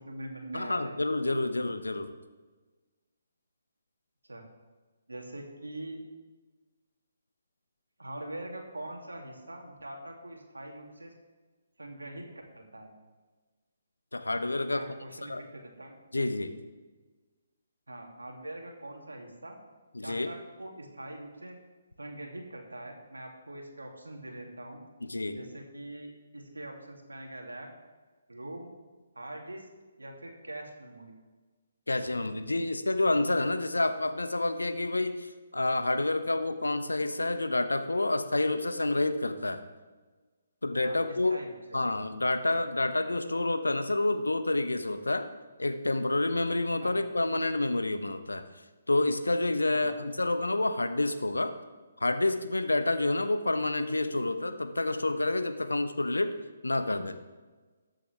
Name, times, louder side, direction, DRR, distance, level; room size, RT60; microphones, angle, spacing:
voice 1, 0.0-1.0 4.2-4.4 5.1-6.0 8.0-11.1 11.8-12.3 12.5-12.9 14.7-15.9 17.9-19.6 20.0-21.6 22.0-24.8 25.3-27.7 28.3-28.7 29.1-29.7 30.0-31.2 40.8-41.5 46.8-46.9 49.7-49.9, right 1 dB, 70° right, 1 dB, 2.4 m, -43 dB
voice 2, 0.5-2.1 14.1-14.8 15.3-15.4 16.1-16.5 19.9-20.3 25.0-25.4 31.9-39.6 40.6-41.3 41.7-45.3 45.6-48.4 48.9-51.5 52.0-56.3 56.6-57.1, left 2 dB, 75° left, 8 dB, 0.9 m, -28 dB
20.5 x 7.7 x 3.4 m, 1.3 s
figure-of-eight pair, 135°, 0 cm